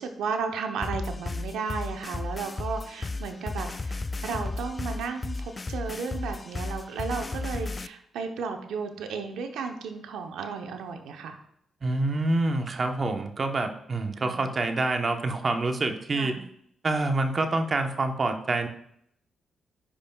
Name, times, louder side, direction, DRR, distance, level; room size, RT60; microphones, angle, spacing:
voice 1, 0.0-11.4 14.2-14.4 16.1-16.4, right 5 dB, 85° right, 5 dB, 0.8 m, -34 dB
sound 1, 0.8-7.9, left 3 dB, 35° left, 0.3 m, -34 dB
voice 2, 11.8-16.3 16.8-18.7, right 2 dB, 45° right, 6 dB, 1.0 m, -27 dB
9.9 x 5.3 x 2.3 m, 0.69 s
supercardioid pair, 60°, 0 cm